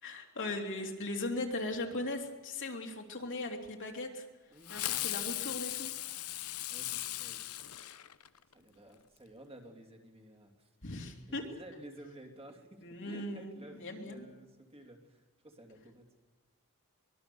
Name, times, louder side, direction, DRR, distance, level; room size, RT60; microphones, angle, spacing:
voice 1, 0.0-4.3 4.7-5.9 10.8-11.4 12.8-14.3, left 2 dB, 60° left, 2 dB, 3.0 m, -38 dB
voice 2, 4.5-5.2 6.7-7.4 8.5-10.7 11.3-16.1, right 1 dB, 25° right, 2 dB, 2.9 m, -53 dB
Fireworks, 4.6-8.5, left 14 dB, 75° left, 0.9 m, -38 dB
23.5 x 21.5 x 7.0 m, 1.2 s
head